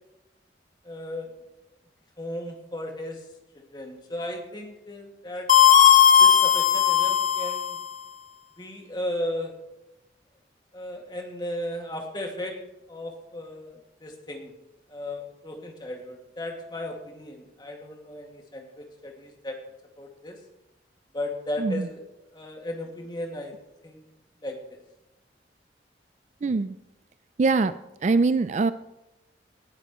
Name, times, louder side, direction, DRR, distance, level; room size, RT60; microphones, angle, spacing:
voice 1, 0.8-1.3 2.2-3.3 3.5-5.5 6.2-7.8 8.6-9.5 10.7-12.6 12.9-14.5 14.9-19.6 20.0-20.4 21.1-22.0 22.3-23.5 23.8-24.0 24.4-24.8, left 1 dB, 25° left, 1 dB, 2.1 m, -35 dB
sound 1, 5.5-7.9, left 9 dB, 45° left, 1.1 m, -17 dB
voice 2, 26.4-26.8 27.4-27.7 28.0-28.7, right 3 dB, 40° right, 13 dB, 0.4 m, -22 dB
19.0 x 11.5 x 3.1 m, 0.94 s
head